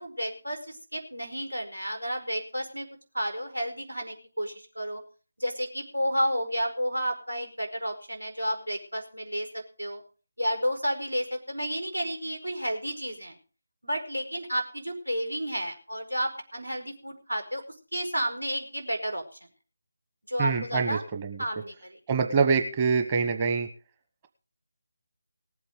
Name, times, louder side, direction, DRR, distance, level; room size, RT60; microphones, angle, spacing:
voice 1, 0.0-2.9 3.1-5.0 5.4-10.0 10.4-13.4 13.8-17.6 17.9-19.2 20.3-21.0 21.4-22.0, equal, 85° right, 5 dB, 4.8 m, -31 dB
voice 2, 20.4-21.4 22.1-23.7, right 5 dB, 20° right, 6 dB, 1.1 m, -25 dB
19.0 x 8.3 x 5.2 m, 0.37 s
figure-of-eight pair, 155°, 0 cm